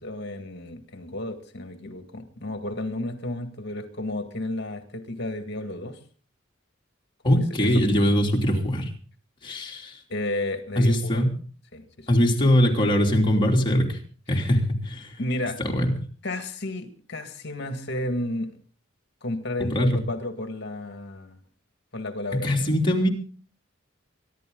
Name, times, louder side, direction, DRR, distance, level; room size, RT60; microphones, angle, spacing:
voice 1, 0.0-6.0 7.2-7.7 10.1-11.2 11.7-12.1 14.3-14.5 15.2-15.6 16.2-18.5 19.2-21.4 21.9-22.7, left 1 dB, 55° left, 7 dB, 2.0 m, -32 dB
voice 2, 7.2-8.9 9.4-10.0 10.8-11.3 12.1-14.0 14.3-15.1 15.6-15.9 19.6-20.0 22.3-23.1, equal, 25° left, -1 dB, 3.0 m, -22 dB
24.0 x 11.5 x 3.9 m, 0.40 s
head